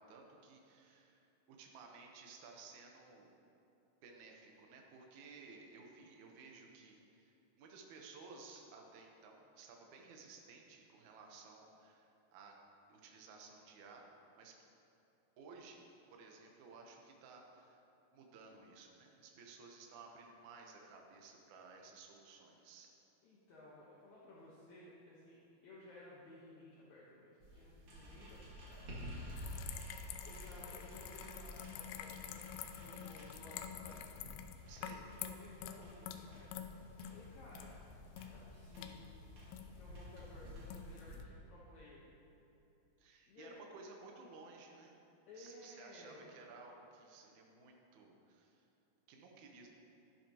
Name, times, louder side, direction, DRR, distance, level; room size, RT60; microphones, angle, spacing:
voice 1, 0.0-3.3 4.0-12.5 12.9-14.1 14.4-14.5 15.4-15.8 16.1-17.8 18.1-22.9 34.7-35.1 43.0-45.0 45.4-48.7 49.1-49.7, right 4 dB, 80° right, 1 dB, 1.7 m, -56 dB
voice 2, 23.2-28.9 29.9-34.1 35.2-37.9 38.2-39.2 39.8-42.1 43.3-43.6 45.3-46.4, left 1 dB, 70° left, -6 dB, 1.8 m, -57 dB
sound 1, 27.4-41.2, equal, 40° right, 2.4 m, -52 dB
sound 2, 29.4-41.2, left 9 dB, 90° left, 2.8 m, -49 dB
12.5 x 12.0 x 2.9 m, 2.9 s
omnidirectional pair, 4.9 m